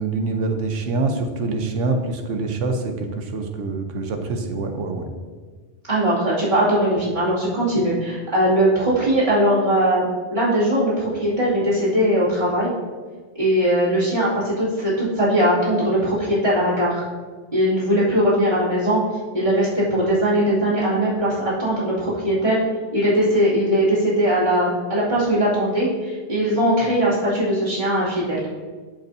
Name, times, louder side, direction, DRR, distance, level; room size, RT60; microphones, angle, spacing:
voice 1, 0.0-5.1, right 3 dB, 85° right, 5 dB, 1.2 m, -25 dB
voice 2, 5.9-12.7 13.3-17.0 17.5-19.0 19.3-22.6 22.9-28.4, equal, 40° right, -9 dB, 2.7 m, -20 dB
13.0 x 5.3 x 2.7 m, 1.5 s
omnidirectional pair, 1.2 m